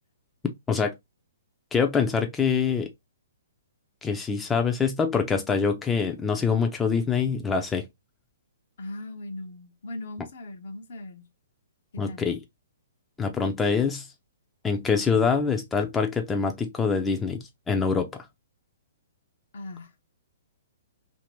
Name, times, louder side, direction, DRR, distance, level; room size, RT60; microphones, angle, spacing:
voice 1, 1.7-2.9 4.0-7.8 12.0-12.4 13.2-14.1 14.6-18.2, left 5 dB, 10° left, 0.4 m, -25 dB
voice 2, 8.8-11.2 12.1-12.3 19.5-19.9, left 1 dB, 55° left, 0.7 m, -39 dB
2.8 x 2.6 x 3.0 m
figure-of-eight pair, 120°, 0 cm